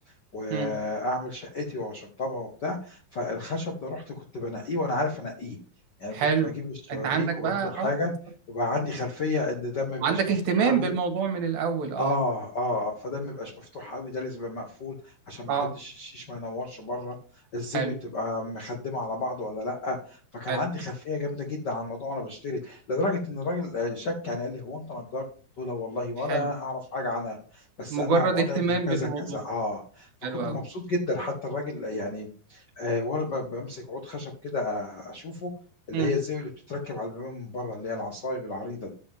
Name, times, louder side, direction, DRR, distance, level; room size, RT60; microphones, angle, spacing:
voice 1, 0.3-5.6 6.0-8.1 8.5-10.2 10.6-10.9 12.0-17.2 17.5-25.2 25.6-28.6 28.9-35.5 35.9-38.9, left 2 dB, 70° left, 2 dB, 1.0 m, -32 dB
voice 2, 6.1-6.5 6.9-7.9 10.0-12.2 15.5-15.7 17.7-17.9 20.5-20.6 26.3-26.5 27.9-29.4 30.2-30.6 35.9-36.2, right 5 dB, 75° right, 4 dB, 3.4 m, -26 dB
12.5 x 7.5 x 3.6 m, 0.40 s
omnidirectional pair, 4.4 m